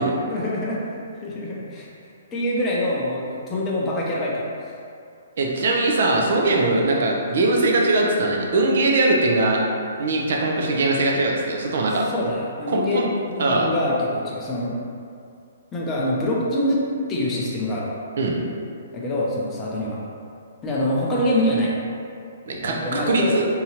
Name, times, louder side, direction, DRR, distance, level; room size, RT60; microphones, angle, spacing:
voice 1, 0.3-4.7 6.7-6.8 12.1-14.8 15.7-16.8 17.1-17.9 18.9-20.0 20.6-21.7 22.6-23.4, left 1 dB, 15° left, -6 dB, 0.6 m, -25 dB
voice 2, 5.4-9.6 10.0-12.1 12.7-13.1 13.4-13.7 18.2-18.4 22.5-23.5, right 2 dB, 65° right, -1 dB, 0.6 m, -21 dB
3.7 x 2.8 x 2.9 m, 2.4 s
hypercardioid pair, 150°, 0 cm